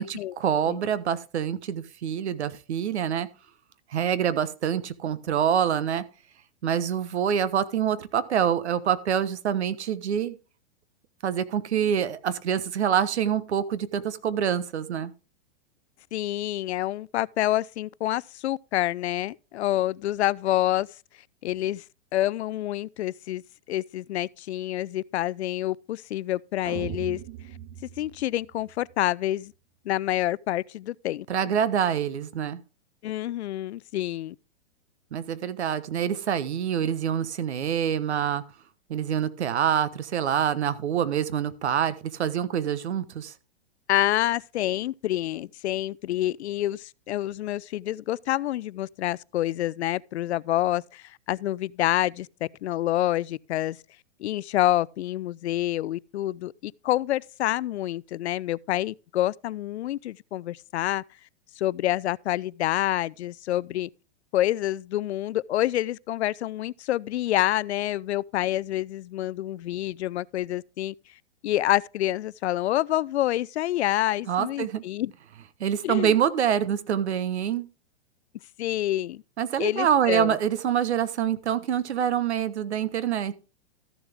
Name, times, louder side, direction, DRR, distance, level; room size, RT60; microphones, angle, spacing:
voice 1, 0.0-3.3 3.9-6.0 6.6-10.4 11.2-15.1 31.3-32.6 35.1-38.4 38.9-43.3 74.3-74.8 75.6-77.7 79.4-83.4, right 9 dB, 85° right, 1.1 m, -26 dB
voice 2, 16.1-20.9 21.4-21.8 22.1-23.4 23.7-27.2 28.0-29.5 29.9-31.3 33.0-34.4 43.9-53.8 54.2-61.0 61.6-63.9 64.3-70.9 71.4-75.1 75.8-76.1 78.6-79.2 79.6-80.4, left 14 dB, 85° left, 0.5 m, -27 dB
sound 1, 26.6-28.9, right 11 dB, 30° right, 0.5 m, -39 dB
14.0 x 7.1 x 3.5 m
hypercardioid pair, 140°, 32 cm